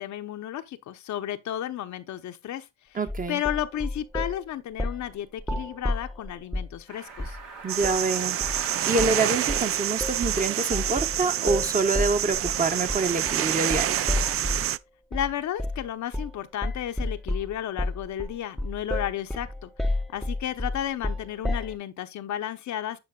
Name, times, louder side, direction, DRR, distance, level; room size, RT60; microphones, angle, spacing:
voice 1, 0.0-3.0 3.3-7.4 15.1-23.0, left 11 dB, 70° left, 0.8 m, -33 dB
voice 2, 2.9-3.4 7.6-14.0, right 3 dB, 25° right, 1.1 m, -26 dB
sound 1, 3.1-4.4 4.8-5.1 5.4-6.8 7.2-7.4 7.8-8.0 8.4-8.6 9.0-9.2 9.5-14.7 15.1-15.3 15.6-15.9 16.1-16.4 16.6-21.8, left 1 dB, ahead, 0.7 m, -31 dB
Car, 6.9-14.3, right 5 dB, 85° right, 2.6 m, -43 dB
sound 2, 7.7-14.8, right 11 dB, 50° right, 0.4 m, -28 dB
9.7 x 4.6 x 2.3 m
cardioid pair, 90°, 30 cm